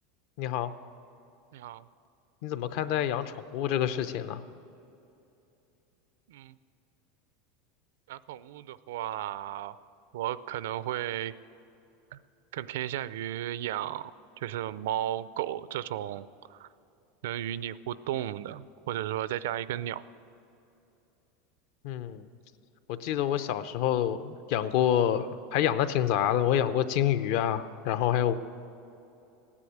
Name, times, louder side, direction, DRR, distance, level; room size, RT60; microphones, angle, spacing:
voice 1, 0.4-0.7 2.4-4.4 21.8-22.2 22.9-28.3, left 10 dB, 50° left, 12 dB, 0.6 m, -27 dB
voice 2, 1.5-1.8 6.3-6.6 8.1-9.8 10.1-11.3 12.5-14.1 14.4-16.3 16.6-16.7 17.2-20.0, right 12 dB, 85° right, 16 dB, 0.5 m, -34 dB
16.5 x 9.8 x 8.6 m, 2.8 s
supercardioid pair, 170°, 0 cm